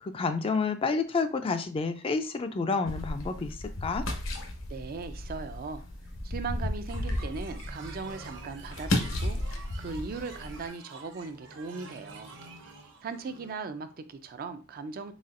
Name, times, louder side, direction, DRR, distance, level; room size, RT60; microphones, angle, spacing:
voice 1, 0.0-3.5 3.8-4.0, left 4 dB, 25° left, 0.3 m, -29 dB
sound 1, 2.9-10.7, left 1 dB, 75° left, 0.9 m, -34 dB
voice 2, 4.7-5.8 6.2-12.4 13.0-15.1, right 4 dB, 45° right, 0.4 m, -38 dB
sound 2, 6.9-13.5, right 3 dB, 60° right, 0.9 m, -48 dB
4.1 x 3.8 x 2.5 m
head